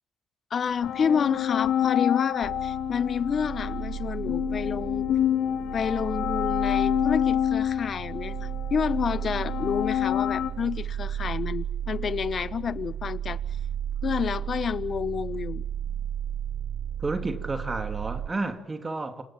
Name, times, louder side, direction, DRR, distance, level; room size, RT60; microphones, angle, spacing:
voice 1, 0.5-5.1 5.7-13.4 14.0-15.6, left 7 dB, 50° left, 1.2 m, -29 dB
sound 1, 0.6-10.5, left 10 dB, 85° left, 2.7 m, -28 dB
sound 2, 2.4-18.3, right 9 dB, 65° right, 1.3 m, -34 dB
voice 2, 17.0-19.2, right 3 dB, 25° right, 2.5 m, -31 dB
28.5 x 26.5 x 7.4 m
cardioid pair, 90°, 0 cm